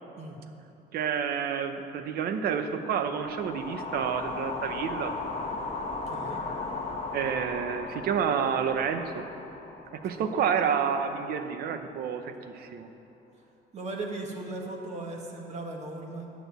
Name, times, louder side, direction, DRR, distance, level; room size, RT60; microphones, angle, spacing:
voice 1, 0.9-5.1 6.4-6.5 7.1-9.2 9.9-12.9, right 7 dB, 65° right, 8 dB, 0.8 m, -29 dB
sound 1, 3.1-11.3, left 3 dB, 40° left, 1.2 m, -37 dB
voice 2, 6.1-6.4 10.1-10.3 13.7-16.3, right 2 dB, 40° right, 1 dB, 1.5 m, -37 dB
9.2 x 6.1 x 8.1 m, 2.9 s
cardioid pair, 110°, 17 cm